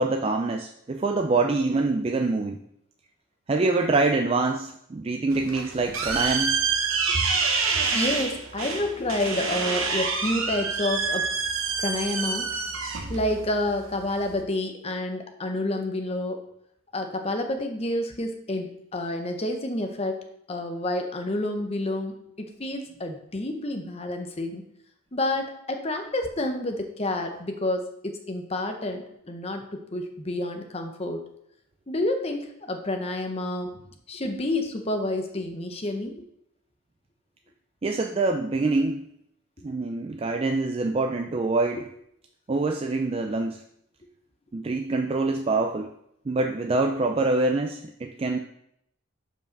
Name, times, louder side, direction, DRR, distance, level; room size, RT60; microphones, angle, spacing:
voice 1, 0.0-2.6 3.5-6.6 37.8-39.1 39.6-41.9 42.5-43.6 44.5-45.9 46.3-48.4, right 3 dB, 25° right, 4 dB, 0.3 m, -25 dB
sound 1, 5.3-14.4, right 5 dB, 75° right, 1.0 m, -27 dB
voice 2, 7.9-11.3 11.8-12.5 13.1-16.4 16.9-20.2 20.5-24.6 25.1-31.3 31.9-33.7 34.1-36.2, left 1 dB, 30° left, 5 dB, 0.8 m, -29 dB
5.6 x 4.9 x 5.9 m, 0.75 s
head